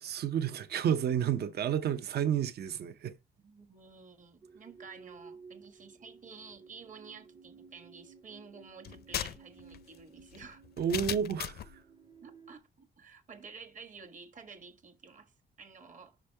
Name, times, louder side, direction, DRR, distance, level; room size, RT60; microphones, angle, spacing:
voice 1, 0.0-3.1 10.8-11.8, right 9 dB, 65° right, 0.7 m, -31 dB
voice 2, 3.4-10.6 10.9-11.2 12.2-15.3 15.6-16.1, right 5 dB, 45° right, 1.3 m, -51 dB
sound 1, 4.4-12.6, right 5 dB, 25° right, 0.6 m, -56 dB
sound 2, 8.8-11.7, left 10 dB, 60° left, 0.5 m, -38 dB
5.4 x 5.2 x 4.4 m
cardioid pair, 95°, 18 cm